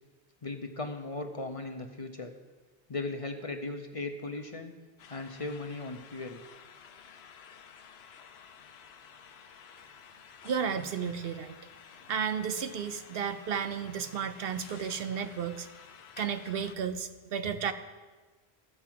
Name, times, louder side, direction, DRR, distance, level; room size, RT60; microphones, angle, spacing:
voice 1, 0.4-2.3 2.9-4.7 5.1-6.4, left 3 dB, 35° left, 5 dB, 0.7 m, -37 dB
sound 1, 5.0-16.8, left 7 dB, 80° left, 0.9 m, -52 dB
voice 2, 10.4-11.6 12.1-15.7 16.2-17.7, right 7 dB, 70° right, 10 dB, 0.8 m, -33 dB
13.5 x 4.7 x 7.5 m, 1.3 s
omnidirectional pair, 1.1 m